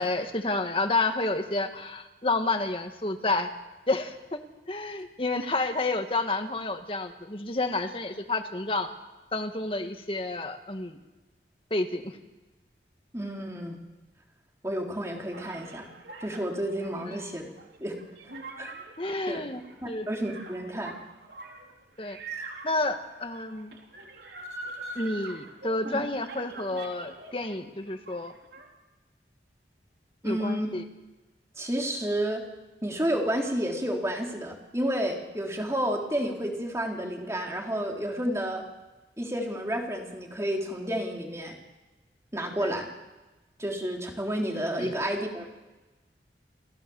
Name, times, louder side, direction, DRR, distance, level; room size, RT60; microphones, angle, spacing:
voice 1, 0.0-3.5 3.9-4.4 4.7-8.9 9.3-11.0 11.7-12.1 17.1-17.2 19.0-20.1 22.0-22.2 22.6-23.7 24.9-28.3 30.2-30.8 42.6-42.7 44.8-44.9, left 2 dB, 30° left, 6 dB, 1.8 m, -30 dB
voice 2, 13.1-13.8 14.6-15.9 16.2-17.5 17.8-18.0 18.6-18.7 19.3-19.4 19.8-20.9 25.8-26.0 30.2-30.7 31.6-32.4 32.8-38.6 39.2-41.6 42.3-42.9 43.6-45.5, equal, 15° right, 1 dB, 3.4 m, -30 dB
sound 1, 15.3-27.5 27.8-28.7, right 3 dB, 75° right, 3.8 m, -44 dB
29.5 x 14.5 x 7.1 m, 1.1 s
head